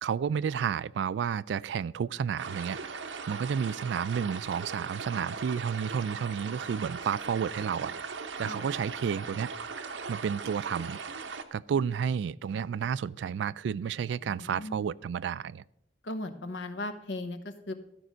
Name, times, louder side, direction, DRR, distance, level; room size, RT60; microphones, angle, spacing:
voice 1, 0.0-8.0 8.4-9.5 10.1-11.0 11.5-15.6, right 7 dB, 75° right, 21 dB, 0.3 m, -31 dB
sound 1, 2.4-11.4, right 5 dB, 90° right, 0.8 m, -39 dB
voice 2, 14.2-14.9 16.0-17.7, left 2 dB, 80° left, 10 dB, 1.0 m, -37 dB
13.0 x 5.4 x 6.2 m, 0.79 s
head